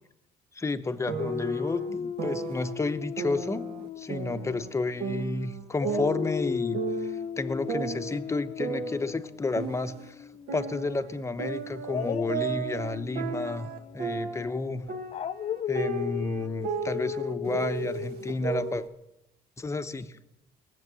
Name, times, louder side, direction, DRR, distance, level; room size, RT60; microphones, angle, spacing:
voice 1, 0.5-3.7 4.0-6.8 7.4-10.2 10.5-14.9 15.7-18.9 19.6-20.1, left 3 dB, 15° left, 10 dB, 0.8 m, -31 dB
sound 1, 1.1-2.7 3.2-4.7 5.0-7.3 7.7-10.1 10.5-14.6 14.9-18.9, right 6 dB, 70° right, 1.5 m, -35 dB
Dog, 1.2-5.3 5.7-10.7 11.8-18.8, left 8 dB, 40° left, 0.5 m, -36 dB
19.0 x 7.7 x 7.5 m, 0.88 s
cardioid pair, 110°, 17 cm